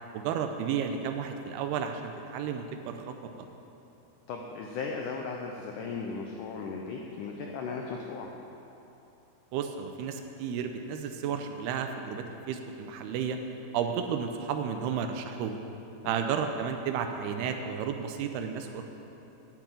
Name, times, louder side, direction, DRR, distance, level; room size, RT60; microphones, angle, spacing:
voice 1, 0.1-3.5 9.5-13.4 13.7-15.6 16.0-18.8, right 7 dB, 85° right, 6 dB, 2.6 m, -32 dB
voice 2, 4.3-8.3 16.0-16.2, left 4 dB, 90° left, 1 dB, 1.8 m, -36 dB
10.0 x 9.1 x 8.8 m, 3.0 s
omnidirectional pair, 4.8 m